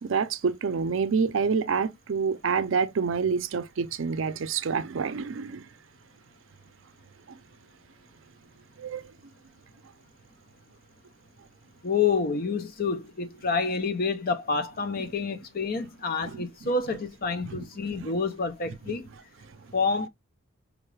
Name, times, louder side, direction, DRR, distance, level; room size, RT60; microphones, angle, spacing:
voice 1, 0.0-5.7 7.3-7.4 8.8-9.0 16.2-16.7 17.4-17.7 17.9-18.1, right 5 dB, 65° right, 0.5 m, -28 dB
voice 2, 11.8-19.1 19.7-20.1, left 4 dB, 45° left, 0.6 m, -28 dB
4.9 x 2.3 x 3.2 m
head